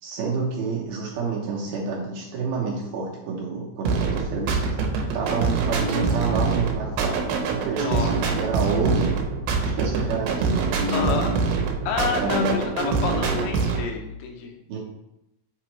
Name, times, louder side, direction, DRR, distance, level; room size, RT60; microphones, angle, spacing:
voice 1, 0.0-4.6 5.1-7.2 7.5-9.1 9.6-11.2 12.2-12.7 14.7-14.8, right 4 dB, 75° right, -3 dB, 2.4 m, -28 dB
sound 1, 3.9-13.9, right 4 dB, 90° right, 2.9 m, -25 dB
voice 2, 7.8-8.1 10.9-11.3 11.9-14.6, left 5 dB, 85° left, 3 dB, 3.0 m, -29 dB
7.7 x 4.2 x 3.0 m, 0.87 s
omnidirectional pair, 4.9 m